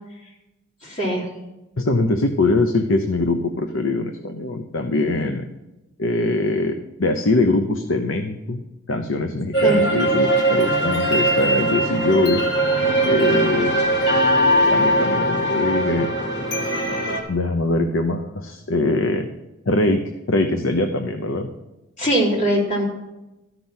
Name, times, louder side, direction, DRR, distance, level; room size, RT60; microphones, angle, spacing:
voice 1, 0.8-1.3 9.6-9.8 22.0-22.8, equal, 35° left, -4 dB, 3.6 m, -21 dB
voice 2, 1.8-5.5 6.0-8.6 8.9-12.4 13.0-13.8 14.7-16.1 17.3-19.3 19.7-20.0 20.3-21.5, left 2 dB, 85° left, 6 dB, 0.8 m, -22 dB
sound 1, 9.5-17.2, right 1 dB, 55° left, 2.2 m, -20 dB
13.5 x 6.1 x 7.2 m, 0.97 s
head